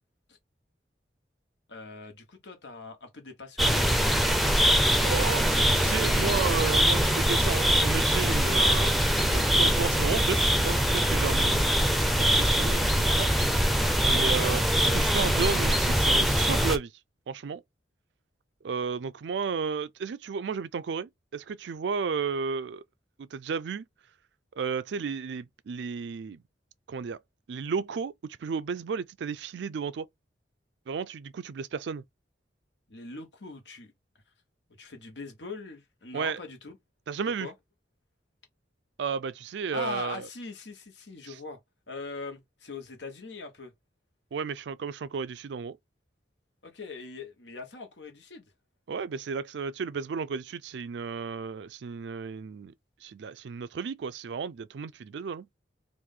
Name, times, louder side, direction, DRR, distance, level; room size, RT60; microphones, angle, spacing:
voice 1, 1.7-4.0 5.6-6.3 14.8-15.0 32.9-33.9 34.8-36.8 37.4-37.5 39.7-41.6 41.9-43.7 46.6-48.4, left 3 dB, 85° left, 1.3 m, -41 dB
sound 1, 3.6-16.8, equal, ahead, 0.5 m, -23 dB
voice 2, 5.0-8.9 9.2-11.6 12.1-13.3 14.0-16.9 17.3-17.6 18.6-22.8 23.2-23.8 24.6-26.4 26.9-27.2 27.5-30.1 30.9-32.0 36.1-36.4 37.1-37.5 39.0-40.3 41.3-41.4 44.3-45.8 48.9-52.7 53.0-55.5, right 5 dB, 75° right, 0.4 m, -33 dB
3.0 x 2.6 x 3.7 m
head